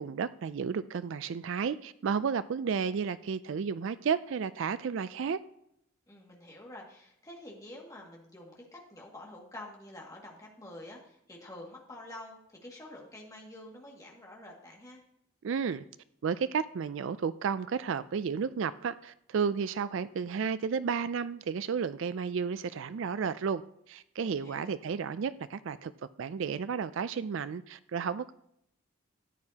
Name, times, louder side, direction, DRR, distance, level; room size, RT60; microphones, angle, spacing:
voice 1, 0.0-5.4 15.4-15.8 16.2-23.6 23.9-25.9 26.2-28.3, right 6 dB, 60° right, 0.3 m, -32 dB
voice 2, 6.1-15.0 24.2-24.7, left 1 dB, 15° left, 2.0 m, -48 dB
14.0 x 9.7 x 2.8 m
head